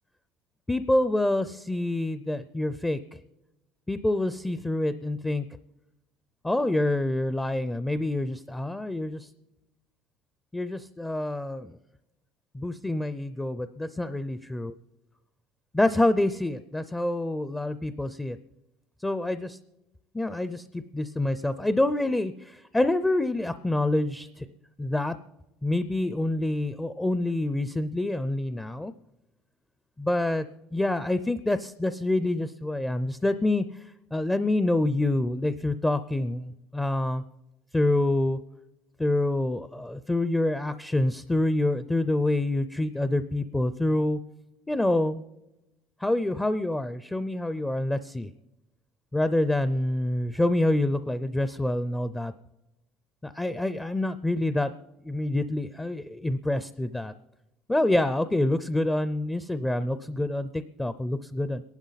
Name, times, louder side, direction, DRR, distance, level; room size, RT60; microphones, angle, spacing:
voice 1, 0.7-3.2 3.9-5.5 6.4-9.3 10.5-11.8 12.5-14.7 15.7-18.4 19.0-19.6 20.1-24.5 24.8-25.2 25.6-28.9 30.0-30.5 30.7-33.6 34.1-37.2 37.7-38.4 39.0-44.2 44.7-45.2 46.0-48.3 49.1-52.3 53.2-54.7 55.0-57.1 57.7-61.6, left 1 dB, 10° left, 12 dB, 0.4 m, -27 dB
26.5 x 11.5 x 4.0 m, 0.98 s
cardioid pair, 125°, 0 cm